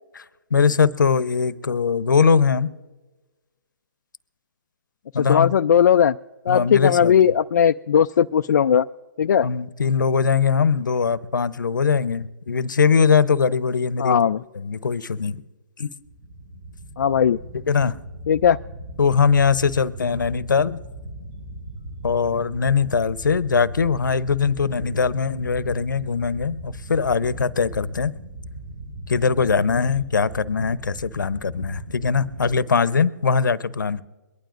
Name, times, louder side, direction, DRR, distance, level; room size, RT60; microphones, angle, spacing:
voice 1, 0.5-2.7 5.1-5.5 6.5-7.2 9.4-14.2 14.5-15.4 15.8-15.9 17.7-18.0 19.0-20.8 22.0-28.1 29.1-34.0, left 5 dB, 90° left, 0.8 m, -21 dB
voice 2, 5.3-6.2 6.5-8.9 9.2-9.5 14.0-14.4 17.0-17.4 18.3-18.6, left 8 dB, 65° left, 0.4 m, -17 dB
sound 1, 16.0-32.6, right 1 dB, 45° right, 4.5 m, -38 dB
23.0 x 11.5 x 2.5 m
hypercardioid pair, 150°, 10 cm